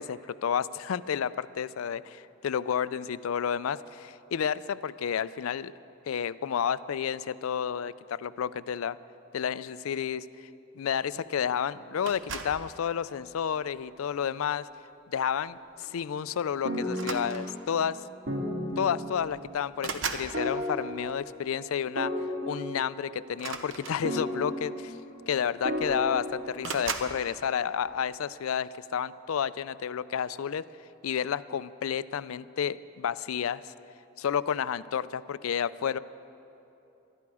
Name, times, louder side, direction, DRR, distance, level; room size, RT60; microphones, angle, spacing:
voice 1, 0.0-5.7 6.1-9.0 9.3-10.3 10.8-14.7 15.1-18.0 18.8-22.1 22.5-24.9 25.3-30.6 31.0-33.7 34.2-36.0, left 8 dB, 85° left, 16 dB, 0.4 m, -31 dB
sound 1, 12.1-12.7 13.6-13.9 15.4-15.5 15.8-16.0 16.9-17.8 18.8-18.9 19.2-20.4 23.3-24.4 25.3-25.4 25.6-26.1 26.6-27.2, right 5 dB, 65° right, 0.9 m, -37 dB
sound 2, 16.6-17.8 18.3-19.4 20.3-21.5 22.0-23.4 24.0-25.2 25.6-27.1, equal, 50° right, 2.2 m, -34 dB
19.0 x 13.0 x 4.8 m, 2.9 s
head